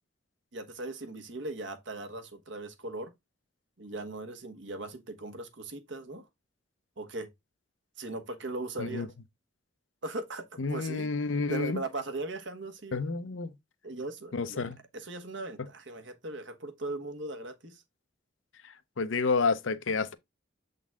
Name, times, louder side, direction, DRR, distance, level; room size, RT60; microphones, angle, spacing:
voice 1, 0.5-3.1 3.8-6.2 7.0-7.3 8.0-9.1 10.0-11.1 11.5-12.9 13.8-17.8, right 2 dB, 70° right, 1.2 m, -39 dB
voice 2, 10.6-11.8 12.9-13.5 14.3-14.8 15.6-15.7 19.0-20.1, left 4 dB, 90° left, 0.7 m, -29 dB
7.5 x 3.9 x 3.6 m
head